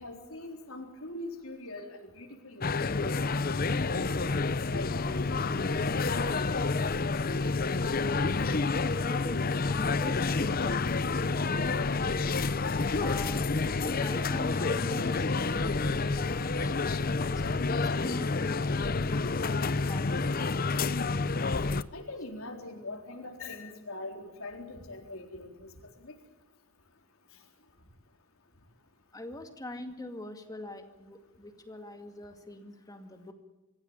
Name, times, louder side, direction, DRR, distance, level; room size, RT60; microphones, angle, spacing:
voice 1, 0.0-4.0 4.7-5.8 21.9-25.7 26.0-26.1, left 2 dB, 85° left, 2 dB, 3.9 m, -42 dB
sound 1, 2.6-21.8, left 3 dB, 45° left, 0.7 m, -29 dB
sound 2, 3.6-17.6, equal, 30° right, 3.8 m, -47 dB
voice 2, 9.1-9.4 9.7-10.8 11.3-12.2 13.0-17.4 18.0-19.6 19.8-20.1 29.1-33.3, left 1 dB, 15° left, 6 dB, 2.2 m, -43 dB
25.5 x 16.0 x 8.8 m, 1.1 s
head